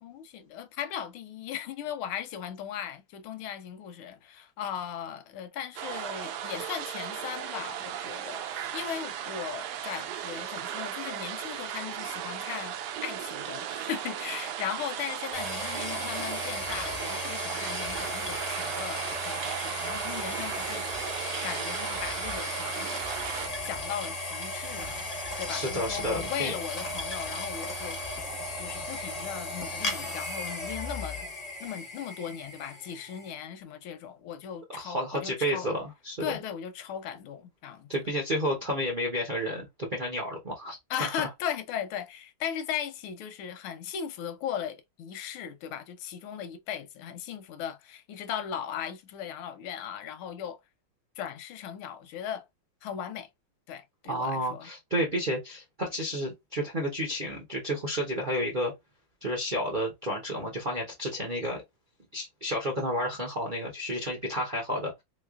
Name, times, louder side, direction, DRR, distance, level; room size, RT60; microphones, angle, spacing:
voice 1, 0.0-12.8 13.0-21.0 21.4-22.9 23.6-25.0 25.4-28.1 28.6-31.3 31.6-35.7 36.2-37.9 40.9-50.6 51.2-52.5 52.8-53.3 53.7-54.7, left 9 dB, 90° left, 1.5 m, -37 dB
sound 1, 5.8-23.5, right 10 dB, 85° right, 0.8 m, -36 dB
sound 2, 15.3-33.3, left 2 dB, 40° left, 0.5 m, -36 dB
voice 2, 25.5-26.5 34.7-36.3 37.9-40.8 41.2-41.3 54.1-58.7 59.2-61.6 62.1-64.9, equal, 55° right, 0.5 m, -31 dB
3.4 x 3.2 x 2.4 m
omnidirectional pair, 2.3 m